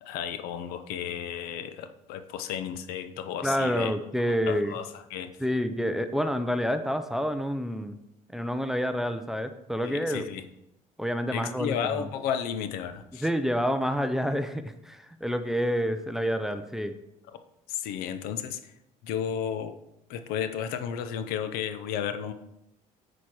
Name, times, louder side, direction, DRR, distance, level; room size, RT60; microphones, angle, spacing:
voice 1, 0.0-4.0 4.5-5.3 9.8-10.4 11.3-13.3 17.3-17.4 17.7-18.7 19.0-19.8 20.1-22.3, left 8 dB, 85° left, 10 dB, 0.7 m, -33 dB
voice 2, 3.4-4.7 5.4-8.0 8.3-10.3 11.0-12.1 13.2-16.9, equal, ahead, 9 dB, 0.4 m, -28 dB
9.0 x 4.4 x 4.7 m, 0.85 s
cardioid pair, 140°, 15 cm